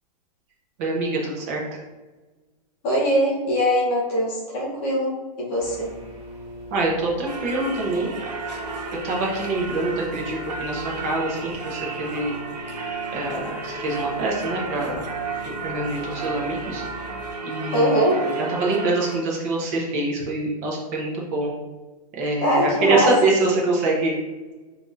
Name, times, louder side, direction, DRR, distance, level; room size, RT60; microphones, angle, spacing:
voice 1, 0.8-1.8 6.7-8.1 9.0-12.3 13.1-15.1 15.6-16.8 17.4-17.9 18.4-21.5 22.1-24.1, right 2 dB, 25° right, -2 dB, 0.6 m, -25 dB
voice 2, 2.8-5.9 17.7-18.2 22.4-23.2, equal, 20° left, -2 dB, 0.5 m, -22 dB
sound 1, 5.6-17.3, left 1 dB, 45° right, 1.1 m, -40 dB
Singing / Church bell, 7.3-19.2, right 4 dB, 85° right, 1.0 m, -33 dB
5.6 x 2.7 x 2.3 m, 1.2 s
hypercardioid pair, 175°, 21 cm